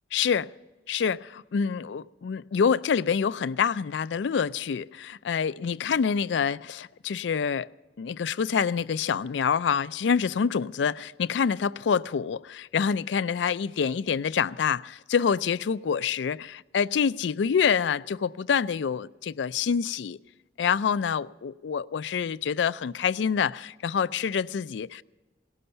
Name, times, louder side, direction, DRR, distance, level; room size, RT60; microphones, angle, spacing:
voice 1, 0.1-0.5 0.9-7.7 8.0-20.2 20.6-25.0, left 6 dB, 80° left, 0.4 m, -26 dB
18.0 x 12.0 x 5.7 m
head